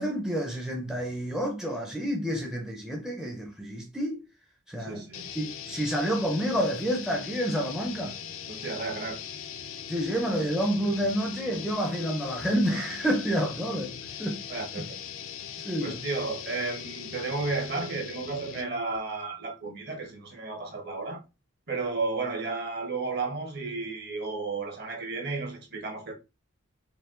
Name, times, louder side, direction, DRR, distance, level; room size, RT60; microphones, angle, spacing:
voice 1, 0.0-4.2 4.7-5.0 5.3-8.1 9.9-14.4 14.7-14.9 15.6-16.0, equal, ahead, 0.6 m, -29 dB
voice 2, 4.8-5.3 8.5-9.2 14.5-15.0 15.8-21.2 21.7-26.1, right 3 dB, 50° right, 1.3 m, -33 dB
sound 1, 5.1-18.8, left 8 dB, 70° left, 0.6 m, -40 dB
4.6 x 2.4 x 3.7 m
head